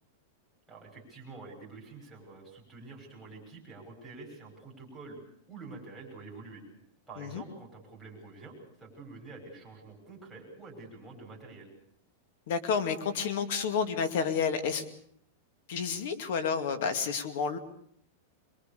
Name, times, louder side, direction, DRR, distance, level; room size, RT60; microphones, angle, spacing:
voice 1, 0.7-5.2 5.5-6.6 7.1-11.7, right 3 dB, ahead, -4 dB, 6.1 m, -47 dB
voice 2, 12.5-14.8 15.7-17.6, left 6 dB, 55° left, 10 dB, 2.3 m, -30 dB
24.0 x 22.0 x 6.9 m, 0.68 s
supercardioid pair, 175°, 0 cm